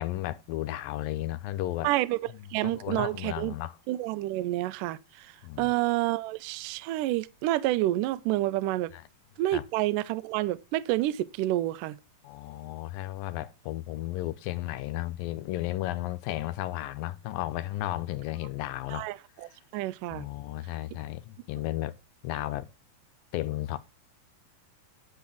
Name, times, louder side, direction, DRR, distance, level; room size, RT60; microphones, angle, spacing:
voice 1, 0.0-1.9 2.3-3.8 5.4-5.7 8.9-9.0 9.5-9.6 12.2-19.1 20.1-21.9 22.2-22.7 23.3-23.8, left 15 dB, 80° left, 2.2 m, -34 dB
voice 2, 1.8-2.2 2.5-3.5 3.9-5.3 5.6-8.9 9.4-12.0 18.9-20.3, right 16 dB, 85° right, 1.9 m, -29 dB
10.5 x 4.3 x 7.0 m
omnidirectional pair, 4.4 m